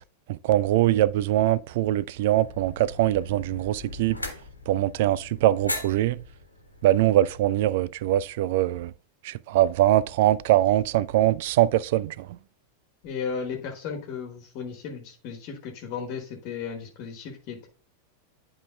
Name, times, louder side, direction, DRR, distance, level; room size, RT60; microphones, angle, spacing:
voice 1, 0.3-4.2 4.7-6.2 6.8-8.9 9.2-12.3, right 14 dB, 50° right, 0.3 m, -22 dB
sound 1, 2.3-7.7, left 2 dB, 85° left, 1.3 m, -39 dB
voice 2, 13.0-17.7, left 6 dB, 45° left, 1.3 m, -35 dB
10.5 x 4.9 x 2.3 m
figure-of-eight pair, 90°, 0 cm